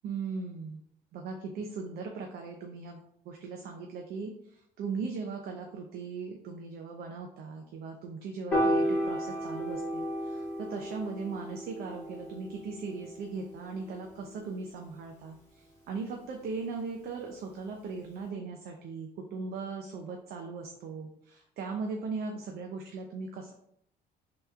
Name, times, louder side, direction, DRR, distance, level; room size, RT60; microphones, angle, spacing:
voice 1, 0.0-0.8 1.1-23.5, right 4 dB, 65° right, 2 dB, 0.6 m, -39 dB
Piano, 8.5-14.8, equal, 10° left, 1.5 m, -33 dB
3.3 x 3.0 x 3.5 m, 0.70 s
cardioid pair, 110°, 17 cm